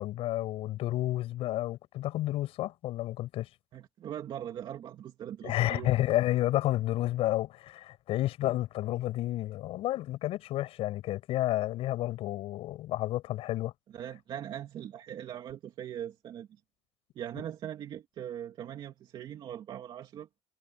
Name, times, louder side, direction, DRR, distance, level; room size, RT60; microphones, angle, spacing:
voice 1, 0.0-3.5 5.4-13.7 17.4-17.5, left 15 dB, 75° left, 5.4 m, -31 dB
voice 2, 3.7-5.9 13.9-16.5 17.2-20.3, right 10 dB, 50° right, 2.5 m, -40 dB
cardioid pair, 155°, 10 cm